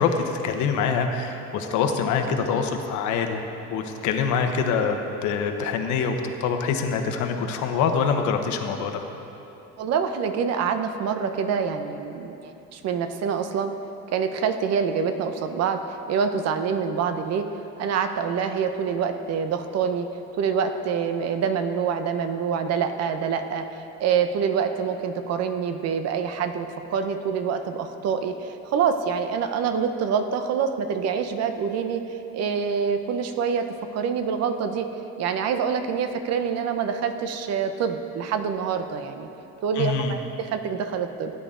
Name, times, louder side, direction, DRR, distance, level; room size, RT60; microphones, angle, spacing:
voice 1, 0.0-3.4 3.7-6.1 6.4-9.0 39.8-40.1, left 6 dB, 70° left, 5 dB, 1.2 m, -25 dB
voice 2, 9.8-13.7 14.1-17.5 17.8-20.1 20.4-33.7 33.9-34.9 35.2-39.3 39.6-41.3, right 6 dB, 55° right, 8 dB, 0.8 m, -26 dB
18.0 x 10.0 x 3.8 m, 3.0 s
cardioid pair, 160°, 31 cm